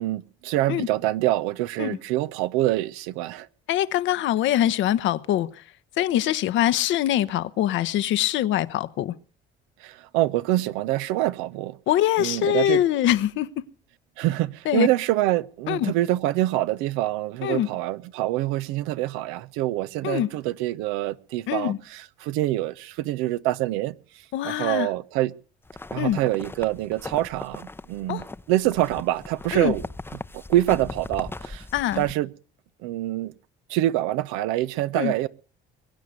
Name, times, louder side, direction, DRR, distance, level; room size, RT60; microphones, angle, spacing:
voice 1, 0.0-3.5 9.8-11.8 12.2-12.8 14.2-23.9 24.4-25.3 25.9-29.8 30.3-31.6 32.0-32.3 32.8-33.3 33.7-35.3, right 15 dB, 80° right, 0.7 m, -25 dB
voice 2, 3.7-5.6 6.0-9.1 11.9-13.6 14.6-14.9 15.7-15.9 17.4-17.7 20.0-20.3 21.5-21.8 24.3-24.9 26.0-26.2 28.1-28.2 29.5-29.7 31.7-32.0 34.9-35.1, left 12 dB, 65° left, 0.9 m, -23 dB
sound 1, 25.7-32.1, left 2 dB, 10° left, 0.7 m, -39 dB
22.0 x 9.5 x 6.5 m
supercardioid pair, 70°, 21 cm